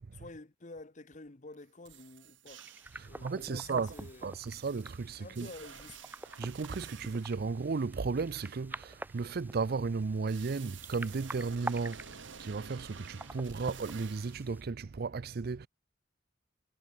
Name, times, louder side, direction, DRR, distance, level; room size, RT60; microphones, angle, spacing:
voice 1, 0.1-2.7 3.0-4.5 5.2-6.0, left 2 dB, 40° left, 1.2 m, -49 dB
sound 1, 1.5-1.6 1.9-3.1 3.4-7.4 10.3-14.4, right 7 dB, 75° right, 1.5 m, -51 dB
sound 2, 2.6-14.6, right 2 dB, 10° right, 1.0 m, -47 dB
voice 2, 2.9-5.5 6.4-12.0 12.4-15.7, right 4 dB, 55° right, 0.5 m, -35 dB
head